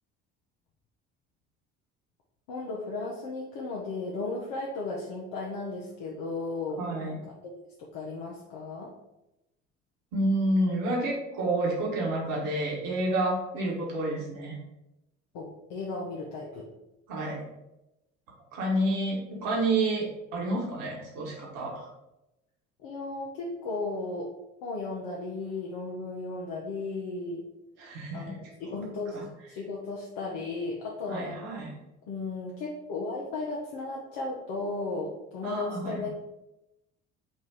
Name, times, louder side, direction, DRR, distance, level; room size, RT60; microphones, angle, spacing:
voice 1, 2.5-7.3 7.8-8.9 15.3-16.7 22.8-24.3 24.6-27.5 28.1-31.4 32.1-36.1, left 3 dB, 70° left, -3 dB, 0.9 m, -35 dB
voice 2, 6.8-7.2 10.1-14.6 17.1-17.5 18.5-21.9 27.8-28.4 28.7-28.8 29.1-29.2 31.1-31.7 35.4-36.1, right 1 dB, 70° right, -3 dB, 1.5 m, -29 dB
4.1 x 2.5 x 4.8 m, 0.93 s
hypercardioid pair, 60°, 35 cm